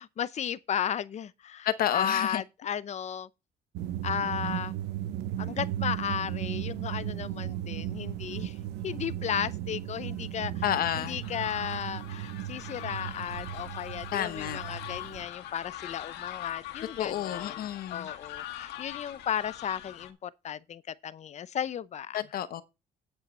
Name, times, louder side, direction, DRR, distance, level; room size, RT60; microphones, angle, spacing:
voice 1, 0.0-1.7 1.9-3.3 4.0-4.7 5.4-8.6 8.8-10.6 11.0-17.6 17.9-22.2, left 9 dB, 40° left, 0.6 m, -34 dB
voice 2, 1.6-2.4 10.6-11.2 14.1-14.6 17.0-18.1 22.1-22.6, left 11 dB, 60° left, 1.0 m, -30 dB
sound 1, 3.7-15.3, right 12 dB, 90° right, 0.8 m, -36 dB
sound 2, 10.7-20.1, left 13 dB, 90° left, 1.4 m, -42 dB
9.1 x 7.9 x 4.3 m
cardioid pair, 110°, 17 cm